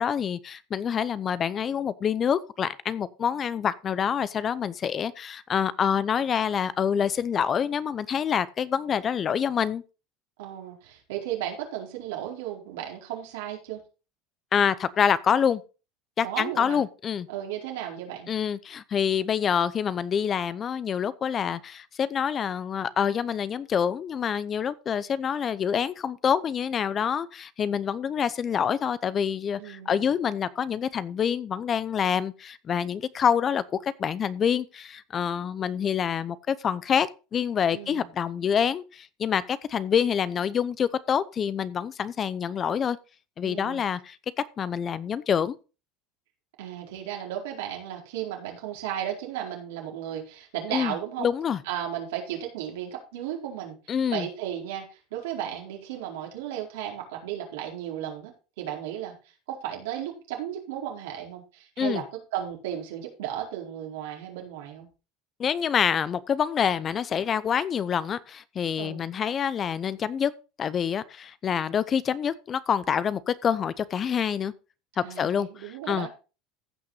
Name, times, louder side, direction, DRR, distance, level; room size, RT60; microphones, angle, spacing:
voice 1, 0.0-9.8 14.5-15.6 16.2-17.3 18.3-43.0 43.4-44.2 44.6-45.6 50.7-50.9 51.2-51.6 53.9-54.3 61.8-62.0 65.4-70.3 70.6-74.5 75.2-75.5 75.9-76.1, left 8 dB, 30° left, 0.7 m, -26 dB
voice 2, 10.4-13.8 16.2-16.8 17.3-18.3 29.6-30.1 37.7-38.1 43.4-43.8 46.6-51.3 51.7-53.8 54.1-59.2 59.5-62.0 62.3-64.9 68.8-69.0 75.0-76.1, right 11 dB, 85° right, 4.3 m, -35 dB
15.0 x 6.0 x 4.0 m
supercardioid pair, 125°, 0 cm